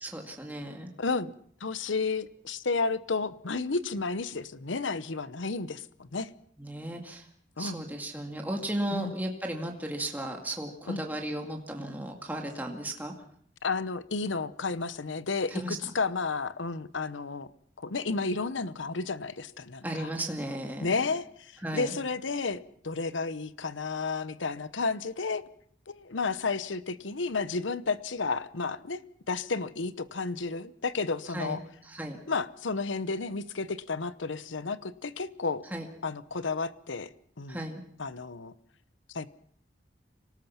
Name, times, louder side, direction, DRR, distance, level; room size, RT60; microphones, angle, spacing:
voice 1, 0.0-0.9 6.6-7.3 7.6-13.1 15.5-15.8 19.8-21.0 21.6-21.9 31.3-31.6 31.8-32.2 35.7-35.9 37.5-37.8, right 1 dB, 10° right, 2.2 m, -35 dB
voice 2, 1.0-1.3 1.6-6.3 7.6-7.8 8.9-9.1 10.9-11.0 13.6-17.5 17.8-20.1 20.8-25.4 25.9-29.0 29.3-31.6 32.3-35.6 36.0-37.1 37.4-37.6 38.0-38.5 39.1-39.3, left 4 dB, 90° left, 0.9 m, -32 dB
26.0 x 18.5 x 5.8 m
head